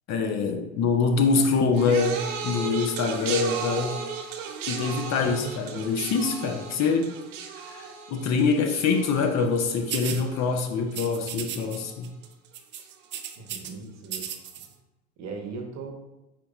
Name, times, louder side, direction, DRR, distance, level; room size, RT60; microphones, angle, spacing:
voice 1, 0.1-4.0 4.7-7.1 7.6-12.1, left 4 dB, 45° left, 4 dB, 0.6 m, -25 dB
sound 1, 1.7-11.1 11.4-11.9 12.8-12.9, right 6 dB, 75° right, 0.6 m, -36 dB
Drum, 5.2-7.4, right 3 dB, 15° right, 1.0 m, -44 dB
sound 2, 9.9-10.2 10.9-11.8 12.0-12.3 12.5-13.7 14.0-14.7, right 9 dB, 30° right, 0.4 m, -35 dB
voice 2, 13.4-14.3 15.2-15.9, right 4 dB, 45° right, 2 dB, 1.0 m, -38 dB
5.0 x 3.0 x 2.4 m, 0.97 s
hypercardioid pair, 80°, 38 cm